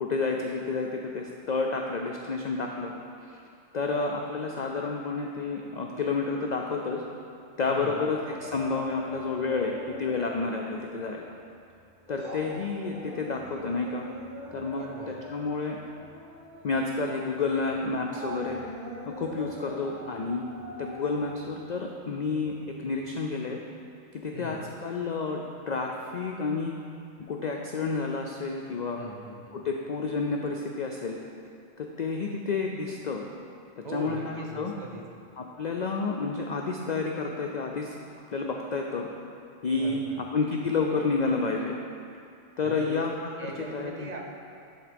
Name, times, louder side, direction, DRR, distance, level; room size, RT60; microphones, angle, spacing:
voice 1, 0.0-2.9 3.2-3.4 3.7-7.0 7.6-11.2 12.1-14.0 14.5-15.8 16.6-18.6 19.1-20.5 20.8-22.5 22.8-23.6 24.2-25.4 25.7-26.7 27.3-29.0 29.5-31.2 31.8-33.3 33.9-34.7 35.4-38.0 38.3-39.1 39.6-40.0 40.3-41.8 42.6-43.1 43.7-44.1, left 4 dB, 80° left, 1 dB, 0.4 m, -30 dB
voice 2, 7.7-8.0 14.7-15.2 24.3-24.7 28.9-29.6 33.8-35.0 39.7-40.2 42.6-43.0 43.4-44.2, right 1 dB, 35° right, 0 dB, 0.9 m, -40 dB
sound 1, 8.3-10.7 11.0-11.2 11.6-22.6 22.9-23.0, equal, 80° right, 2.2 m, -43 dB
11.0 x 3.7 x 5.1 m, 2.6 s
omnidirectional pair, 1.3 m